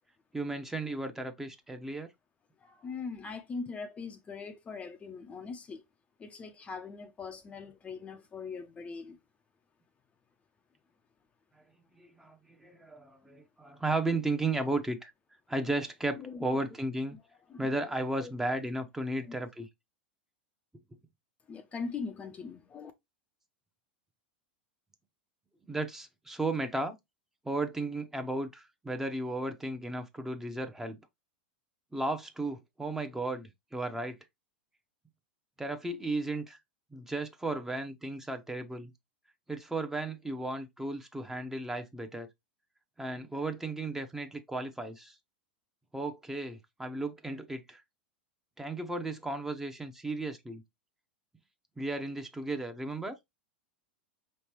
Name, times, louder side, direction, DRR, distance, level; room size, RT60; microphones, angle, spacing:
voice 1, 0.3-2.1 12.0-15.1 15.5-17.2 17.6-19.7 25.7-26.9 27.4-31.0 31.9-34.2 35.6-36.6 36.9-38.9 39.5-42.3 43.0-45.1 45.9-47.8 48.6-50.6 51.8-53.2, right 2 dB, 5° right, 0.8 m, -34 dB
voice 2, 2.6-5.8 6.2-9.2 14.1-14.2 16.2-16.5 17.1-17.2 17.5-17.7 18.2-18.3 19.2-19.4 21.5-22.9, left 5 dB, 25° left, 0.6 m, -41 dB
5.1 x 3.2 x 3.0 m
hypercardioid pair, 100°, 5 cm